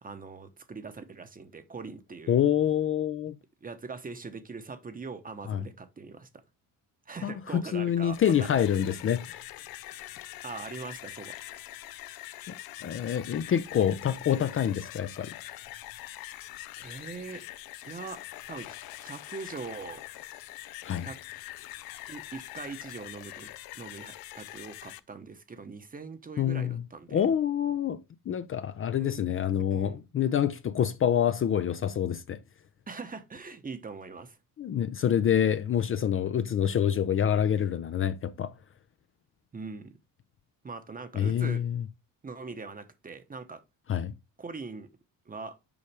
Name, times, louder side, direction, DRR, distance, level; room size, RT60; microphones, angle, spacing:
voice 1, 0.0-2.4 3.6-6.3 7.1-8.9 10.4-11.4 14.3-14.4 16.8-17.4 17.8-18.2 18.5-18.8 19.0-20.0 21.0-21.2 22.1-27.2 29.0-29.3 29.7-30.0 32.9-34.4 39.5-40.0 40.6-41.6 42.2-43.6 44.4-44.9 45.3-45.6, right 4 dB, 25° right, 0.9 m, -42 dB
voice 2, 2.3-3.4 5.5-5.7 7.2-9.4 12.8-15.3 20.8-21.1 26.4-26.8 27.1-28.0 28.3-32.4 34.6-38.5 41.1-41.9 43.9-44.1, left 9 dB, 35° left, 0.5 m, -27 dB
sound 1, 8.0-25.0, left 15 dB, 80° left, 0.6 m, -44 dB
7.1 x 4.8 x 3.4 m
cardioid pair, 95°, 35 cm